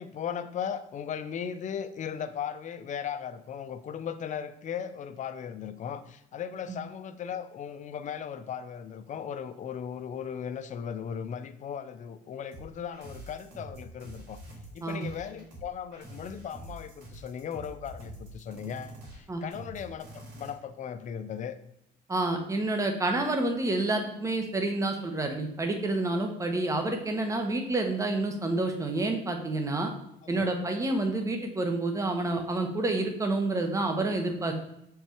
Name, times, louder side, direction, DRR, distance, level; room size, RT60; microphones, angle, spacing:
voice 1, 0.0-14.4 14.7-21.6 30.2-30.5, left 8 dB, 45° left, 11 dB, 0.6 m, -37 dB
sound 1, 12.5-20.5, right 1 dB, 80° right, 2.6 m, -46 dB
voice 2, 22.1-29.9 30.3-34.5, right 2 dB, 20° right, 5 dB, 1.2 m, -29 dB
6.6 x 4.8 x 4.5 m, 0.78 s
cardioid pair, 110°, 17 cm